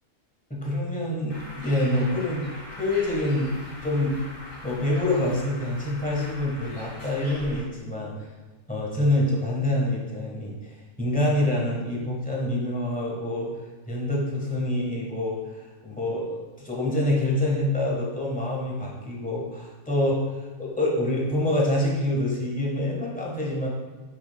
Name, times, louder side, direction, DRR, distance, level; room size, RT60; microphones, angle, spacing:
voice 1, 0.5-3.5 3.8-4.2 4.6-8.3 8.7-13.5 13.9-20.2 20.6-23.7, left 1 dB, 5° left, -3 dB, 1.1 m, -26 dB
Bird, 1.3-7.6, left 1 dB, 35° left, 2.3 m, -41 dB
7.6 x 5.8 x 2.2 m, 1.3 s
omnidirectional pair, 1.6 m